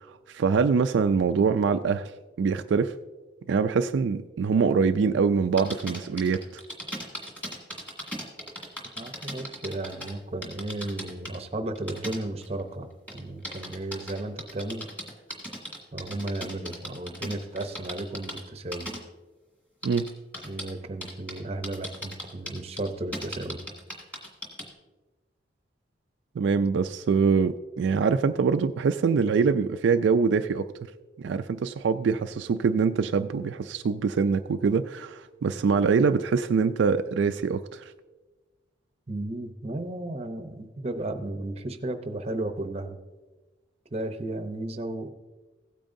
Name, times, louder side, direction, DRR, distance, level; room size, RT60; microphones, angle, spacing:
voice 1, 0.3-2.1 2.4-2.9 3.5-6.6 19.8-20.1 26.4-30.7 31.2-37.8, right 5 dB, 75° right, 8 dB, 0.3 m, -24 dB
sound 1, 5.6-10.1 10.4-11.4 11.8-12.6 13.1-18.4 18.7-19.0 19.8-20.7 21.0-21.4 21.6-24.7, equal, 5° left, 1.8 m, -37 dB
voice 2, 9.0-12.9 13.1-14.9 15.9-18.9 20.4-23.6 39.1-43.0 43.9-45.1, right 2 dB, 35° right, 7 dB, 0.7 m, -34 dB
16.0 x 8.8 x 2.6 m, 1.2 s
head